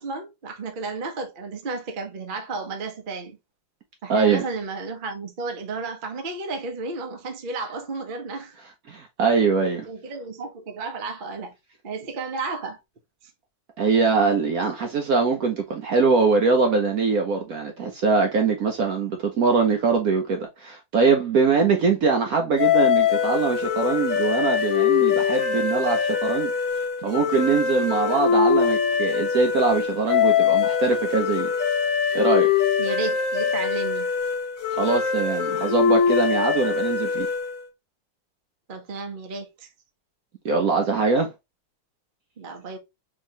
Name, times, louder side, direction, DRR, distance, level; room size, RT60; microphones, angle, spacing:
voice 1, 0.0-3.4 4.0-8.5 9.9-11.5 11.8-12.8 32.8-34.1 38.7-39.7 42.4-42.8, right 3 dB, 40° right, 0.7 m, -32 dB
voice 2, 4.1-4.4 8.9-9.9 13.8-26.5 27.0-31.5 32.1-32.5 34.7-37.3 40.4-41.3, right 4 dB, 60° right, 1.0 m, -22 dB
sound 1, 22.6-37.7, left 7 dB, 55° left, 1.0 m, -23 dB
4.5 x 3.0 x 2.8 m
omnidirectional pair, 2.0 m